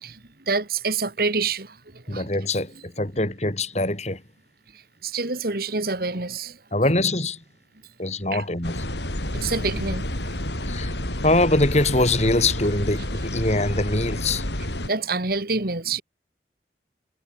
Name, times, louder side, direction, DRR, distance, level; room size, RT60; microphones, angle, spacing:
voice 1, 0.5-1.8 2.1-2.3 5.0-6.6 8.3-8.4 9.3-10.3 14.8-16.0, right 4 dB, 55° right, 2.2 m, -27 dB
voice 2, 2.1-4.2 6.7-7.4 8.0-8.9 10.6-10.9 11.2-14.5, left 2 dB, 40° left, 5.4 m, -23 dB
sound 1, 8.6-14.9, left 1 dB, 80° left, 7.4 m, -29 dB
head